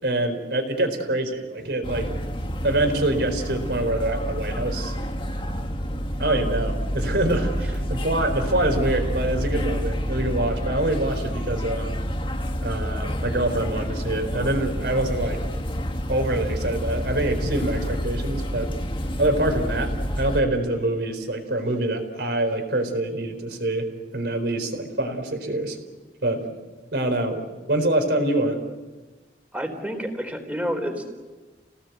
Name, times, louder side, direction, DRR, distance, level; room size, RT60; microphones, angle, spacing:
voice 1, 0.0-2.1 2.6-4.9 6.2-12.0 12.6-15.4 16.1-18.7 19.2-23.9 24.1-25.8 26.2-26.5 26.9-28.6, right 1 dB, 70° right, 6 dB, 4.2 m, -25 dB
sound 1, 1.8-20.4, equal, 30° left, 1.8 m, -28 dB
voice 2, 29.5-31.0, equal, 10° right, 4 dB, 3.9 m, -29 dB
30.0 x 18.5 x 8.2 m, 1.3 s
head